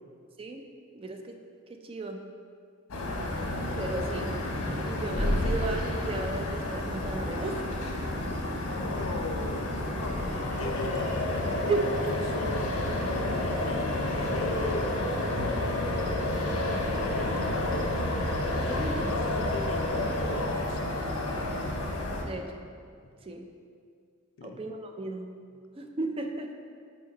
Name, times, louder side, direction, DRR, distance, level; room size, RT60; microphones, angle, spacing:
voice 1, 1.0-1.4 1.7-2.3 3.8-4.3 4.9-7.6 11.7-11.9 18.7-19.1 22.2-22.6 23.2-23.5 24.4-25.3 25.8-26.5, right 3 dB, 25° right, 4 dB, 0.4 m, -34 dB
sound 1, 2.9-22.2, left 1 dB, 85° left, 0.9 m, -30 dB
voice 2, 8.7-12.8 13.1-15.0 15.5-16.2 17.0-18.0 18.4-21.6 24.4-24.6, left 2 dB, 65° left, 4 dB, 0.5 m, -38 dB
6.4 x 4.4 x 3.9 m, 2.3 s
head